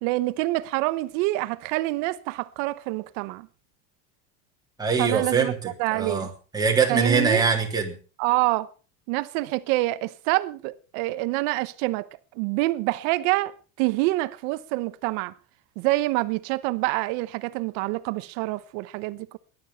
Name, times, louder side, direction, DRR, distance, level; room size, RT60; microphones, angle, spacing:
voice 1, 0.0-3.5 5.0-6.3 6.9-7.5 8.2-8.7 9.1-12.1 12.4-15.3 15.8-19.4, right 20 dB, 70° right, 1.0 m, -26 dB
voice 2, 4.8-8.0, right 5 dB, 10° right, 3.3 m, -23 dB
18.0 x 11.5 x 5.7 m
cardioid pair, 165°, 42 cm